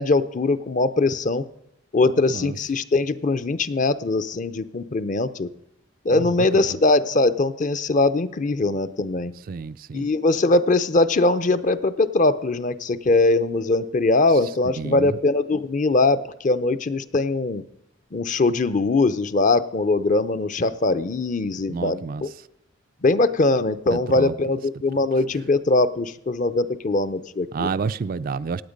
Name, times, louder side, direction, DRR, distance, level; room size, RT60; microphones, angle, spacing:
voice 1, 0.0-1.4 1.9-5.5 6.0-9.3 9.9-17.6 18.1-22.3 23.0-27.7, left 2 dB, 40° left, 0.6 m, -21 dB
voice 2, 2.0-2.6 6.1-6.6 9.5-10.1 14.6-15.2 21.7-22.2 23.9-24.3 27.5-28.6, right 5 dB, 45° right, 0.4 m, -30 dB
16.5 x 8.9 x 5.2 m
head